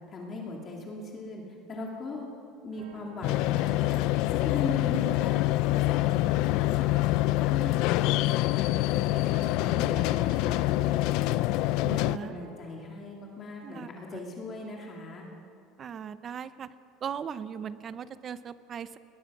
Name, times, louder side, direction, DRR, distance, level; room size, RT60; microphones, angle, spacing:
voice 1, 0.1-1.4 1.7-2.3 2.6-15.3, left 3 dB, 30° left, -1 dB, 2.5 m, -39 dB
sound 1, 2.7-12.5, right 3 dB, 80° right, 3.8 m, -50 dB
sound 2, 3.2-12.2, left 17 dB, 65° left, 0.5 m, -26 dB
voice 2, 11.8-12.4 13.6-14.2 15.8-16.7 17.0-19.0, right 7 dB, 30° right, 14 dB, 0.7 m, -38 dB
22.0 x 19.5 x 6.1 m, 2.6 s
cardioid pair, 145°, 0 cm